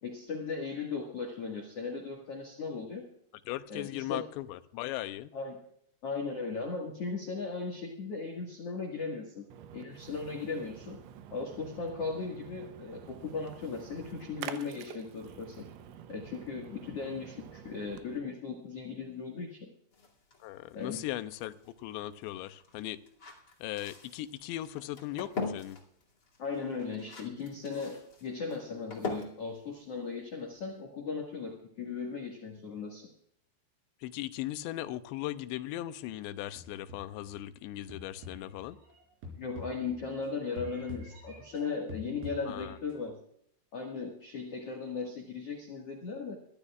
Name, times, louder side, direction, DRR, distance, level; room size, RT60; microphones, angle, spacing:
voice 1, 0.0-3.1 3.7-4.2 5.3-5.6 6.0-9.4 9.7-11.0 11.3-15.6 16.1-19.7 20.7-21.0 26.4-33.1 39.4-43.2 43.7-46.3, left 4 dB, 50° left, 0 dB, 1.9 m, -37 dB
voice 2, 3.5-5.3 20.4-23.0 23.6-25.8 34.0-38.8 42.5-42.7, left 14 dB, 80° left, 11 dB, 2.8 m, -38 dB
Splash splatter, 9.5-18.2, right 9 dB, 85° right, 3.2 m, -48 dB
sound 1, 19.9-30.8, left 3 dB, 30° left, 2.2 m, -43 dB
sound 2, 36.6-37.3 37.9-40.3 40.6-42.9, left 2 dB, 70° right, 6.4 m, -47 dB
23.5 x 14.0 x 2.4 m, 0.70 s
omnidirectional pair, 5.4 m